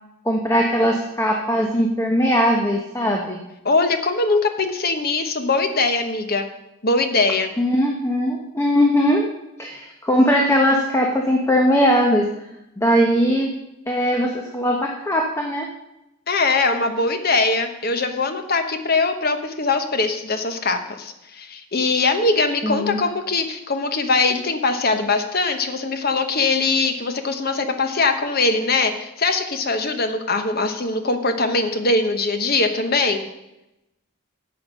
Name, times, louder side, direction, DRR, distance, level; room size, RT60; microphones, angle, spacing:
voice 1, 0.2-3.4 7.6-9.3 9.6-12.2 12.8-13.5 13.9-15.7 22.6-23.0, equal, 10° left, 1 dB, 0.9 m, -19 dB
voice 2, 3.6-6.5 6.8-7.5 16.3-33.3, left 3 dB, 45° left, 7 dB, 1.0 m, -21 dB
10.5 x 7.2 x 6.2 m, 0.92 s
head